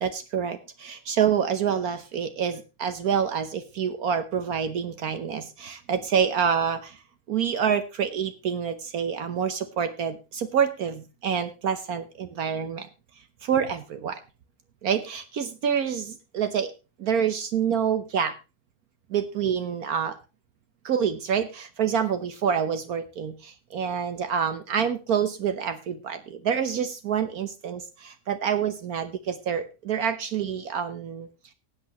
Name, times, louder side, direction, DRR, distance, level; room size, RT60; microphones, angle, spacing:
voice 1, 0.0-7.0 7.3-12.9 13.4-14.2 14.8-16.7 17.0-18.4 19.1-20.2 20.8-31.3, right 7 dB, 65° right, 10 dB, 1.4 m, -27 dB
18.5 x 8.3 x 2.9 m, 0.29 s
omnidirectional pair, 1.7 m